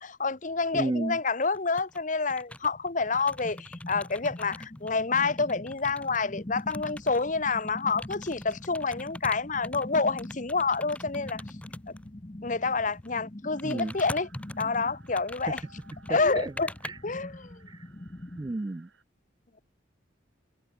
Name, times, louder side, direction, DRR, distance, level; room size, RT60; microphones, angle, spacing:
voice 1, 0.0-11.4 12.4-14.3 14.6-15.6 16.1-16.7 17.0-17.5, left 4 dB, 40° left, 1.2 m, -28 dB
voice 2, 0.7-1.2 13.6-13.9 16.1-16.5 16.8-17.0 17.7-17.8 18.4-18.9, right 2 dB, 20° right, 0.4 m, -32 dB
sound 1, 1.5-2.0 2.3-6.2 6.6-12.1 12.9-13.1 13.6-16.9, left 1 dB, 5° left, 1.1 m, -43 dB
sound 2, 2.7-18.5, left 1 dB, 25° left, 1.0 m, -44 dB
sound 3, 13.4-19.0, right 4 dB, 85° right, 6.9 m, -60 dB
head